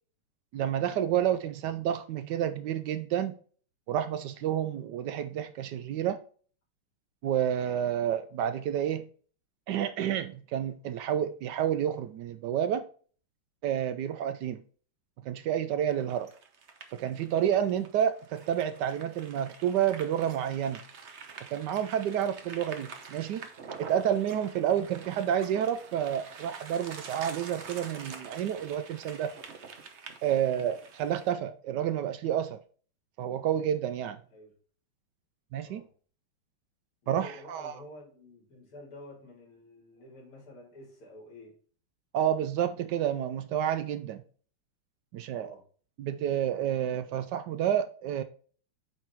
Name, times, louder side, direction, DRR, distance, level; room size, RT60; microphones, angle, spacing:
voice 1, 0.5-3.3 3.9-6.2 7.2-9.1 9.7-12.8 13.6-14.6 15.2-16.3 16.9-20.8 21.5-23.5 23.8-29.3 30.2-32.6 33.2-34.2 35.5-35.8 37.1-37.7 42.1-44.2 45.1-45.6 46.0-48.2, right 10 dB, 80° right, 0.9 m, -29 dB
sound 1, 15.9-31.3, right 5 dB, 55° right, 0.7 m, -47 dB
voice 2, 37.0-41.6 45.3-45.6, left 1 dB, 80° left, 3.9 m, -50 dB
8.4 x 3.6 x 4.5 m
omnidirectional pair, 2.4 m